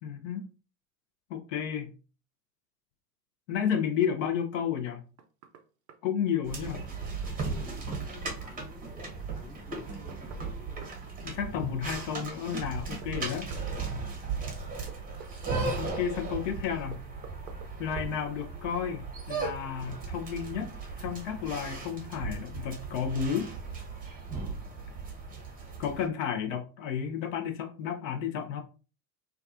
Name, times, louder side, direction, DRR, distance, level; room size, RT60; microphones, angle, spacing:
voice 1, 0.0-0.5 1.3-1.9 3.5-5.0 6.0-6.8 11.2-13.5 15.8-17.0 17.8-20.7 21.0-23.5 25.8-28.6, left 8 dB, 55° left, 0.6 m, -32 dB
Knock, 4.9-5.6 5.9-6.0 7.2-8.4 9.8-11.0 12.5-13.7 14.9-16.1 16.9-17.7 18.0-18.1, right 8 dB, 60° right, 0.5 m, -49 dB
sound 1, 6.5-26.1, right 4 dB, 20° right, 0.7 m, -37 dB
voice 2, 7.4-11.0 14.7-15.0, left 2 dB, ahead, 0.4 m, -52 dB
2.3 x 2.3 x 2.4 m
hypercardioid pair, 85°, 48 cm